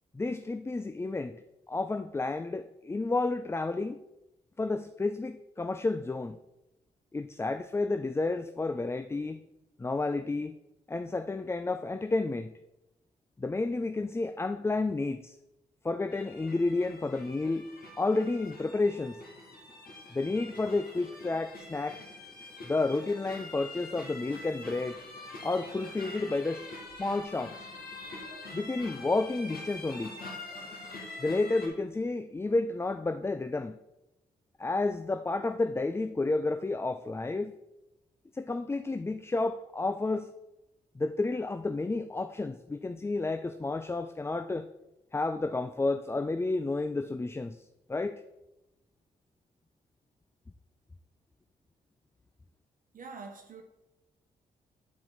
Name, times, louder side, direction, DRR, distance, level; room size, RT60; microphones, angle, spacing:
voice 1, 0.1-1.4 1.7-4.0 4.6-6.4 7.1-9.4 9.8-10.5 10.9-12.5 13.4-15.4 15.8-17.7 18.0-19.2 20.1-22.0 22.6-25.0 25.4-26.7 27.0-27.6 28.5-30.2 31.2-33.8 34.6-37.5 38.3-40.3 41.0-44.7 45.1-48.2, left 3 dB, 15° left, 10 dB, 0.3 m, -31 dB
sound 1, 16.1-31.7, left 2 dB, 50° left, 2.3 m, -45 dB
Zipper (clothing), 20.3-21.0 22.3-23.7 25.2-26.2 27.7-28.1 29.6-29.8, equal, 85° left, 2.6 m, -58 dB
voice 2, 52.9-53.6, right 4 dB, 45° right, 4 dB, 1.0 m, -45 dB
9.4 x 4.3 x 4.0 m, 0.95 s
hypercardioid pair, 40°, 19 cm